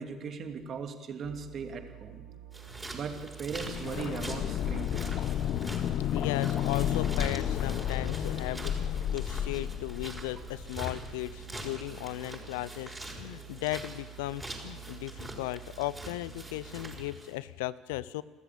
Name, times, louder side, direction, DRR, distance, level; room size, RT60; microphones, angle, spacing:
voice 1, 0.0-2.2 2.9-5.2, right 5 dB, 45° right, 5 dB, 2.8 m, -38 dB
sound 1, 1.2-17.1, right 12 dB, 85° right, 3.8 m, -49 dB
sound 2, 2.5-17.3, right 1 dB, 10° right, 6.1 m, -45 dB
sound 3, 3.5-11.3 11.6-11.7, left 10 dB, 55° left, 1.0 m, -32 dB
voice 2, 6.1-18.2, left 17 dB, 75° left, 19 dB, 0.6 m, -36 dB
28.5 x 14.0 x 8.5 m, 1.3 s
hypercardioid pair, 60°, 0 cm